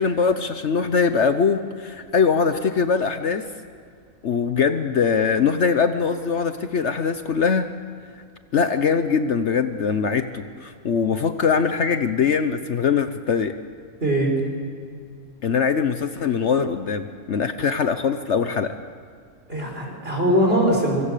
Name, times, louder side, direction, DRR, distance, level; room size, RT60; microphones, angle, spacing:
voice 1, 0.0-3.5 4.2-7.7 8.5-13.6 15.4-18.7, left 6 dB, 55° left, 9 dB, 1.1 m, -22 dB
voice 2, 14.0-14.3 19.5-21.0, right 1 dB, 40° right, 0 dB, 5.5 m, -21 dB
25.5 x 24.0 x 6.7 m, 2.2 s
omnidirectional pair, 1.5 m